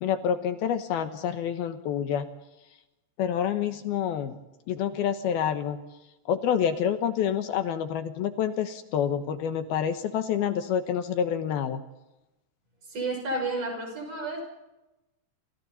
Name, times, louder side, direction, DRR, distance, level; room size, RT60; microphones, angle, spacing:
voice 1, 0.0-2.3 3.2-4.4 4.7-5.8 6.3-11.8, left 8 dB, 70° left, 8 dB, 2.6 m, -27 dB
voice 2, 12.9-14.4, right 2 dB, 40° right, 2 dB, 8.1 m, -31 dB
29.5 x 27.0 x 4.2 m, 0.98 s
omnidirectional pair, 5.5 m